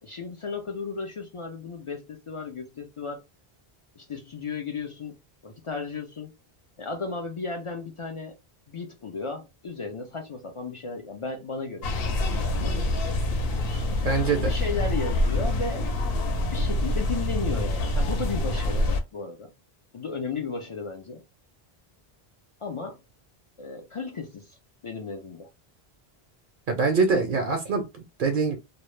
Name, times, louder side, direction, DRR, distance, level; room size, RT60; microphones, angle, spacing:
voice 1, 0.0-3.2 4.0-6.3 6.8-8.4 8.7-11.9 12.4-12.8 14.3-19.5 19.9-21.2 22.6-23.0 23.6-24.6 24.8-25.5, left 4 dB, 55° left, 0.3 m, -35 dB
sound 1, 11.8-19.0, left 1 dB, 70° left, 0.7 m, -26 dB
voice 2, 14.0-14.5 26.7-28.6, right 4 dB, 65° right, 0.7 m, -24 dB
2.1 x 2.0 x 3.0 m
omnidirectional pair, 1.0 m